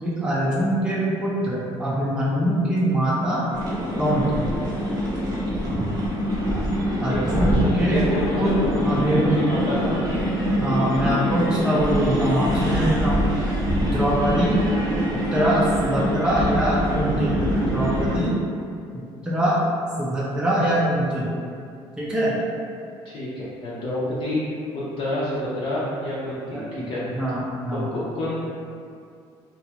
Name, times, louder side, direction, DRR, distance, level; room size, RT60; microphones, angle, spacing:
voice 1, 0.0-3.5 4.0-4.5 5.7-5.9 7.0-8.1 8.4-8.5 8.8-9.4 9.8-9.9 10.6-13.3 13.8-14.7 15.1-18.4 19.2-19.6 20.0-21.3 22.0-22.4 26.5-27.9, right 1 dB, 5° right, -7 dB, 0.4 m, -23 dB
jemar el fnar, 3.5-18.2, equal, 35° right, 0.7 m, -24 dB
voice 2, 7.1-10.2 23.0-23.3 23.6-24.4 24.7-27.0 27.7-28.3, left 1 dB, 55° left, -9 dB, 0.6 m, -28 dB
2.6 x 2.3 x 2.8 m, 2.3 s
cardioid pair, 115°, 11 cm